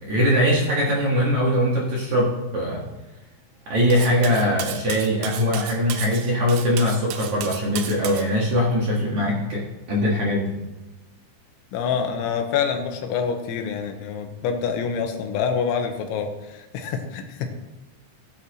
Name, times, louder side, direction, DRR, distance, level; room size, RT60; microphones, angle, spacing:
voice 1, 0.0-2.8 3.7-9.6 9.9-10.5, equal, 55° right, -4 dB, 2.2 m, -21 dB
Cutlery silverware, 3.9-8.3, right 9 dB, 80° right, 2.3 m, -34 dB
voice 2, 11.7-17.5, left 6 dB, 85° left, 5 dB, 3.4 m, -26 dB
16.5 x 8.4 x 3.0 m, 1.1 s
omnidirectional pair, 5.4 m